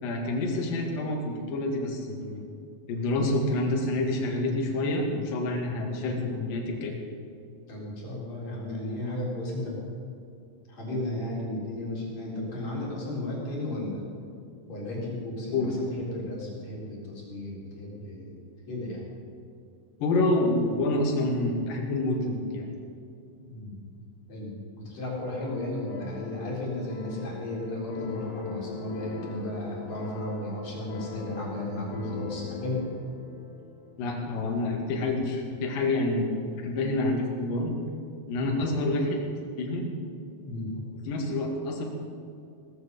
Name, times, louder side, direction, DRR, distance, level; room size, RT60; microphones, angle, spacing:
voice 1, 0.0-2.4 2.9-6.9 15.5-15.7 20.0-22.7 34.0-36.3 36.6-37.7 38.3-39.2 39.6-39.8 41.1-41.8, left 2 dB, 55° left, 0 dB, 3.4 m, -27 dB
voice 2, 7.7-9.8 10.7-14.0 14.7-18.4 18.7-19.1 23.4-23.8 24.3-32.8 38.4-38.6 40.4-40.9, left 1 dB, 35° left, -4 dB, 4.7 m, -34 dB
sound 1, 25.4-34.4, left 3 dB, 90° left, 4.2 m, -42 dB
18.0 x 14.5 x 5.4 m, 2.5 s
omnidirectional pair, 5.5 m